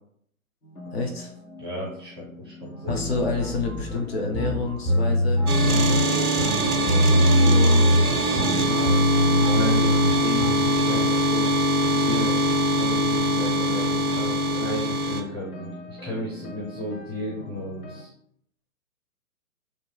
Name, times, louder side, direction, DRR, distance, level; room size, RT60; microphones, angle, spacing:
sound 1, 0.6-18.1, equal, 90° left, 0.7 m, -42 dB
voice 1, 0.9-1.3 2.9-6.3 7.4-7.9 8.6-8.9 9.2-9.9 10.2-11.5 12.0-12.4 12.7-14.4, left 4 dB, 45° left, 1 dB, 0.5 m, -31 dB
voice 2, 1.6-2.9 9.4-10.0 10.6-11.1 11.9-12.2 14.5-18.1, equal, 20° right, -5 dB, 0.5 m, -34 dB
sound 2, 2.9-10.8, equal, 30° left, 1.5 m, -22 dB
sound 3, 5.5-15.2, equal, 85° right, 0.5 m, -23 dB
2.7 x 2.4 x 2.2 m, 0.69 s
figure-of-eight pair, 120°, 44 cm